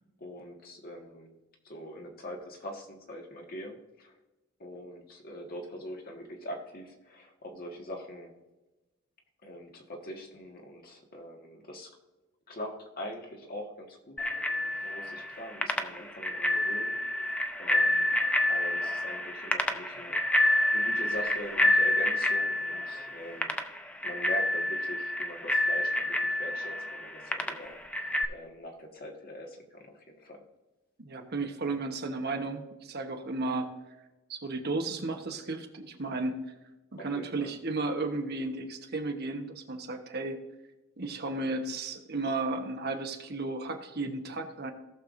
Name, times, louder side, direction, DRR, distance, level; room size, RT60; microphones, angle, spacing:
voice 1, 0.2-1.3 1.6-4.2 4.6-8.3 9.4-11.9 12.5-17.0 17.6-18.1 18.5-23.6 24.0-30.4 37.0-37.5, equal, 45° left, 1 dB, 1.7 m, -43 dB
Bicycle bell, 14.2-28.2, left 1 dB, 5° left, 0.7 m, -29 dB
voice 2, 31.0-33.7 34.3-36.5 36.9-40.4 41.0-44.7, right 3 dB, 50° right, 5 dB, 1.1 m, -34 dB
17.5 x 6.8 x 2.6 m, 1.1 s
head